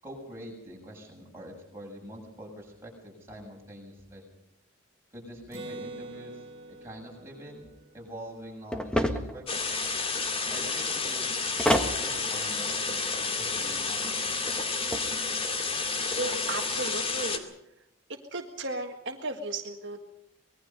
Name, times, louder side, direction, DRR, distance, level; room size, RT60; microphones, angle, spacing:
voice 1, 0.0-4.2 5.1-6.4 6.8-7.6 7.9-9.4 10.5-11.3 12.0-14.7, equal, 10° right, -2 dB, 7.4 m, -45 dB
Acoustic guitar, 5.5-9.2, right 2 dB, 25° right, 4.0 m, -45 dB
sound 1, 8.7-9.4 11.6-12.0 14.6-15.1, equal, 5° left, 1.7 m, -26 dB
sound 2, 9.5-17.4, left 4 dB, 25° left, 2.3 m, -30 dB
voice 2, 16.1-17.5 18.3-20.0, right 2 dB, 55° right, 3 dB, 1.7 m, -35 dB
25.0 x 20.5 x 5.4 m, 0.82 s
head